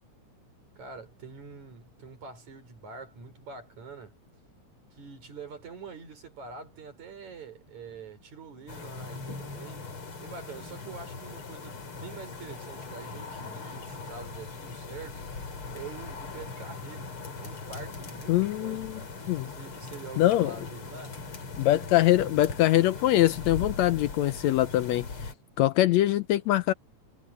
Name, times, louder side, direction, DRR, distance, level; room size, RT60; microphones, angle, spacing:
voice 1, 0.8-4.1 4.9-9.8 10.2-15.4 15.7-19.1 19.5-21.2, right 4 dB, 70° right, 6.7 m, -45 dB
sound 1, 8.7-25.3, left 4 dB, 45° left, 4.0 m, -40 dB
voice 2, 18.3-19.0 19.3-19.5 20.2-20.6 21.6-25.3 25.6-26.7, left 14 dB, 75° left, 1.7 m, -23 dB
omnidirectional pair, 3.5 m